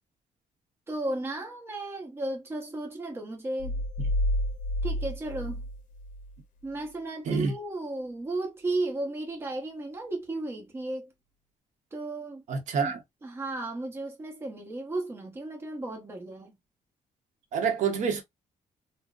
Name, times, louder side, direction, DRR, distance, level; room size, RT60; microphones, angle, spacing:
voice 1, 0.9-3.7 4.8-5.6 6.6-11.1 11.9-12.4 12.7-12.9 13.2-16.5, right 2 dB, 20° right, 0.9 m, -34 dB
sound 1, 3.6-6.4, left 1 dB, 75° left, 0.5 m, -30 dB
voice 2, 12.5-13.0 17.5-18.2, right 5 dB, 70° right, 0.9 m, -27 dB
3.7 x 2.1 x 2.3 m
cardioid pair, 160°, 13 cm